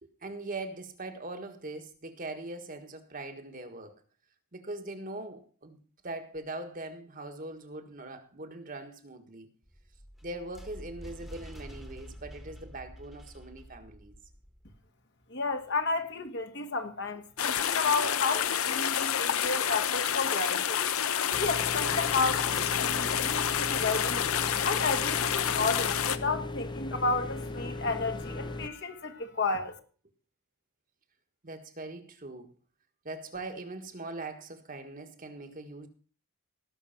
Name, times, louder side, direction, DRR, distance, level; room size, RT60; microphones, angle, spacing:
voice 1, 0.0-4.0 4.5-9.5 10.2-14.2 31.4-32.6 33.0-35.9, right 2 dB, 40° right, 1.5 m, -41 dB
sound 1, 9.6-14.8, equal, ahead, 1.4 m, -48 dB
voice 2, 15.3-20.8 21.3-24.3 24.6-29.8, left 3 dB, 55° left, 1.6 m, -32 dB
sound 2, 17.4-26.2, left 9 dB, 80° left, 0.8 m, -29 dB
sound 3, 21.3-28.7, left 2 dB, 20° left, 0.7 m, -38 dB
17.5 x 6.4 x 5.8 m
head